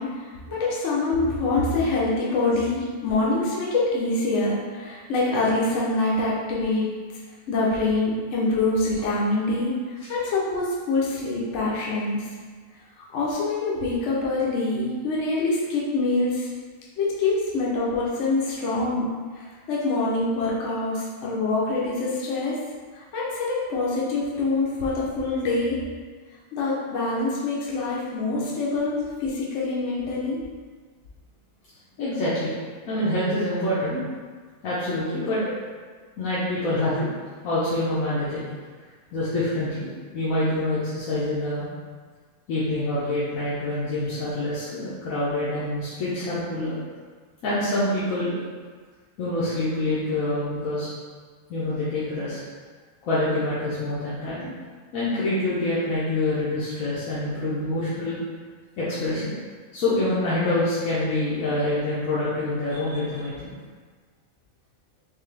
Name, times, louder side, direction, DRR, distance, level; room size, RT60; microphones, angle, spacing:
voice 1, 0.0-6.9 7.5-12.3 13.0-16.5 17.0-22.6 22.9-25.8 26.5-30.4, left 2 dB, 65° left, -6 dB, 1.0 m, -25 dB
voice 2, 32.0-32.5 32.9-34.1 34.6-35.4 36.2-37.1 37.4-38.4 39.1-41.7 42.5-46.8 47.4-48.4 49.2-50.9 51.5-52.4 53.0-54.5 54.9-58.2 58.8-59.4 59.7-63.5, left 1 dB, 80° left, -10 dB, 1.3 m, -26 dB
3.8 x 3.2 x 3.3 m, 1.5 s
omnidirectional pair, 1.4 m